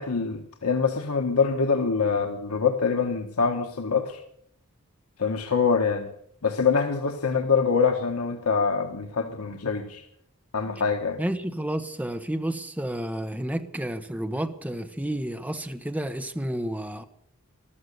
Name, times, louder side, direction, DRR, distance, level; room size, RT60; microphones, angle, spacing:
voice 1, 0.0-4.2 5.2-6.1 6.4-10.0 10.5-11.2, left 5 dB, 80° left, 1.3 m, -24 dB
voice 2, 11.2-17.0, right 1 dB, 5° right, 1.0 m, -31 dB
14.5 x 13.0 x 6.7 m
head